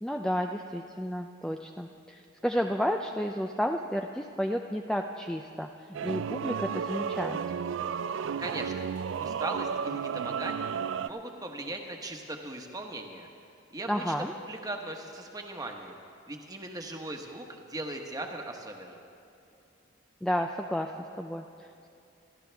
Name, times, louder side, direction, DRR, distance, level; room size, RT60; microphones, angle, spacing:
voice 1, 0.0-5.7 6.0-7.4 13.9-14.3 20.2-21.9, equal, 5° left, 3 dB, 0.4 m, -32 dB
sound 1, 5.9-11.1, right 7 dB, 70° right, 0.3 m, -33 dB
voice 2, 8.4-8.7 9.2-13.3 13.7-14.1 14.4-16.0 16.3-19.0, right 2 dB, 20° right, 2 dB, 1.2 m, -39 dB
26.5 x 13.0 x 3.4 m, 2.7 s
head